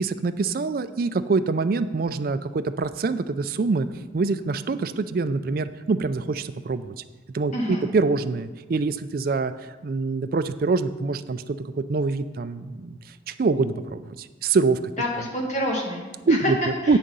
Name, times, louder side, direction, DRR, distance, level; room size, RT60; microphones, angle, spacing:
voice 1, 0.0-3.9 4.1-7.0 7.3-9.5 9.8-13.0 13.3-14.8 16.3-16.6 16.9-17.0, right 4 dB, 50° right, 12 dB, 0.4 m, -25 dB
voice 2, 7.5-7.9 15.0-17.0, left 1 dB, 40° left, -1 dB, 1.7 m, -28 dB
8.8 x 6.4 x 5.4 m, 1.3 s
head